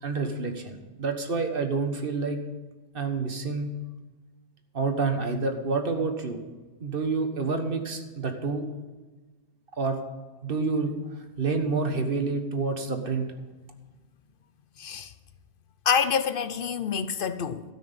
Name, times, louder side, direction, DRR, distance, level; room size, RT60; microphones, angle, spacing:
voice 1, 0.0-2.4 2.9-3.8 4.7-6.4 6.8-8.7 9.8-10.0 10.4-13.3, right 4 dB, 55° right, 1.5 m, -28 dB
voice 2, 14.8-15.1 15.9-17.6, left 7 dB, 55° left, 0.8 m, -27 dB
13.5 x 6.1 x 8.9 m
omnidirectional pair, 1.2 m